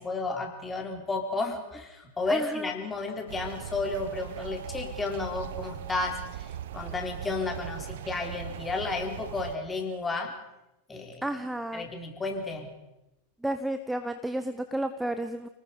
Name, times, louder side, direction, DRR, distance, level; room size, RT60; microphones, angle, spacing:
voice 1, 0.0-10.4 10.9-11.2 11.7-12.7, left 3 dB, 15° left, 3 dB, 3.8 m, -32 dB
voice 2, 2.3-2.7 11.2-11.9 13.4-15.5, right 1 dB, 5° right, 9 dB, 1.0 m, -32 dB
sound 1, 3.3-9.6, right 11 dB, 55° right, 0.9 m, -40 dB
29.5 x 19.5 x 5.1 m, 0.92 s
figure-of-eight pair, 90°, 0 cm